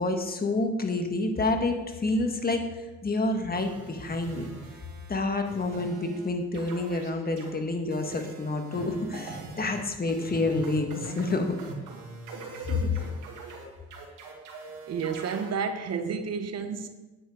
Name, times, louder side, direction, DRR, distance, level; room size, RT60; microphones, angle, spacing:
voice 1, 0.0-4.5 5.1-11.5, left 2 dB, 30° left, 5 dB, 1.6 m, -28 dB
sound 1, 3.5-5.2 5.4-6.3 6.5-7.5 7.9-15.5, right 3 dB, 90° right, 2.2 m, -42 dB
voice 2, 12.7-13.1 14.9-16.9, right 6 dB, 55° right, 9 dB, 1.0 m, -31 dB
9.5 x 9.2 x 4.9 m, 1.1 s
cardioid pair, 90°, 30 cm